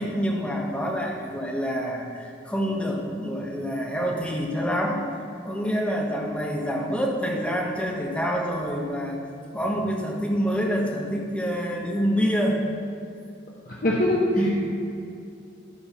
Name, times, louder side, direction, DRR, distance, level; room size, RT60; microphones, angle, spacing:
voice 1, 0.0-5.0 5.4-9.2 9.5-12.6 14.4-14.5, equal, 5° left, -2 dB, 1.2 m, -27 dB
voice 2, 13.7-14.5, left 1 dB, 50° left, -5 dB, 1.1 m, -23 dB
12.0 x 4.6 x 5.7 m, 2.6 s
head